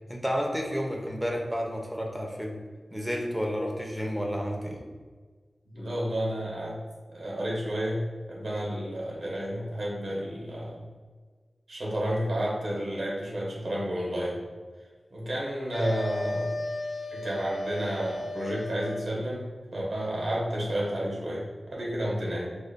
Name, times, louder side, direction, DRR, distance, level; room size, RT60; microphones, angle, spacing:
voice 1, 0.1-2.6 2.9-4.8, equal, 5° right, 1 dB, 0.7 m, -31 dB
voice 2, 5.7-6.8 7.1-10.8 11.7-14.4 15.1-16.6 17.1-19.5 19.7-22.6, equal, 75° right, -5 dB, 1.1 m, -31 dB
sound 1, 15.7-19.2, left 1 dB, 80° left, 1.0 m, -34 dB
4.8 x 2.6 x 2.2 m, 1.5 s
cardioid pair, 50°, 0 cm